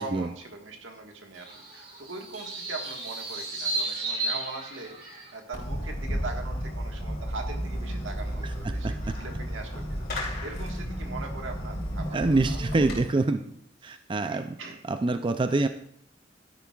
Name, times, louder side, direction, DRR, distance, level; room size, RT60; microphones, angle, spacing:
voice 1, 0.0-8.9 9.1-12.9 13.3-13.4 13.9-14.8, right 3 dB, 85° right, 2 dB, 1.6 m, -41 dB
sound 1, 1.3-5.3, right 2 dB, 55° right, 4.7 m, -34 dB
Fireworks, 5.5-13.0, equal, 55° left, 3.0 m, -32 dB
voice 2, 8.6-9.2 12.1-13.4 13.8-14.6 14.9-15.7, right 3 dB, 25° right, 9 dB, 0.4 m, -26 dB
12.0 x 10.5 x 2.4 m, 0.68 s
head